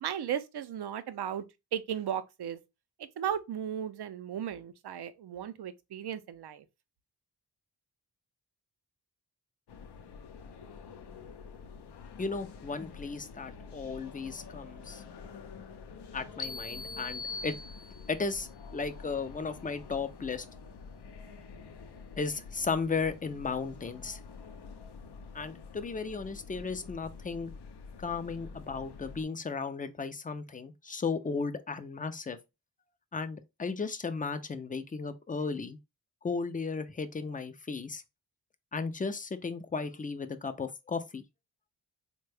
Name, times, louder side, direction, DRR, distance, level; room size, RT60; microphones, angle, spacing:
voice 1, 0.0-1.4 1.7-2.6 3.2-6.6, right 9 dB, 65° right, 0.5 m, -35 dB
sound 1, 9.7-29.2, left 5 dB, 70° left, 0.6 m, -48 dB
voice 2, 12.2-15.0 16.1-17.5 18.1-20.5 22.2-24.2 25.3-27.5 28.0-32.4 33.1-35.8 36.2-38.0 38.7-41.2, left 4 dB, 20° left, 0.4 m, -35 dB
sound 2, 16.4-18.3, left 3 dB, 45° left, 0.9 m, -41 dB
3.5 x 2.2 x 3.3 m
cardioid pair, 70°, 42 cm